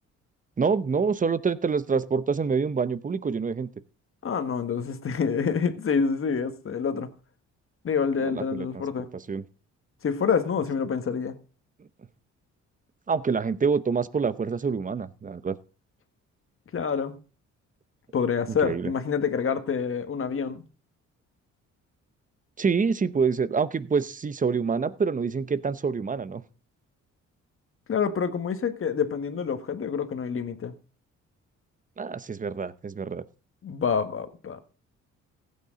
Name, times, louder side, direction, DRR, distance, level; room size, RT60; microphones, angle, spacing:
voice 1, 0.6-3.7 8.2-8.8 9.1-9.4 13.1-15.6 18.5-18.9 22.6-26.4 32.0-33.2, right 5 dB, 25° right, 0.8 m, -26 dB
voice 2, 4.2-7.1 7.8-9.1 10.0-11.4 16.7-17.2 18.1-20.6 27.9-30.7 33.6-34.6, left 6 dB, 45° left, 1.5 m, -27 dB
15.5 x 8.7 x 3.8 m
cardioid pair, 90°, 30 cm